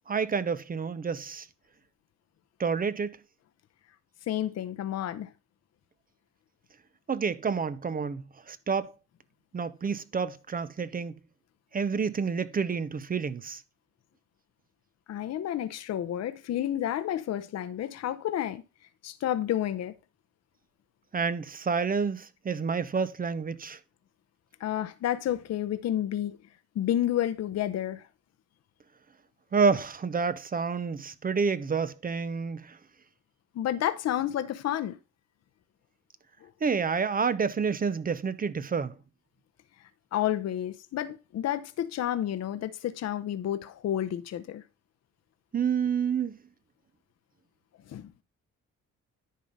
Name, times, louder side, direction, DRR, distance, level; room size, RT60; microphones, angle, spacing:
voice 1, 0.1-1.5 2.6-3.1 7.1-8.9 9.5-11.1 11.7-13.6 21.1-23.8 29.5-32.8 36.6-38.9 45.5-46.4, right 5 dB, 30° right, 0.6 m, -29 dB
voice 2, 4.3-5.3 15.1-18.6 19.0-19.9 24.6-26.4 26.8-28.0 33.5-35.0 36.4-36.5 40.1-44.6 47.9-48.1, left 11 dB, 60° left, 0.7 m, -30 dB
10.5 x 3.8 x 5.4 m
cardioid pair, 90°, 30 cm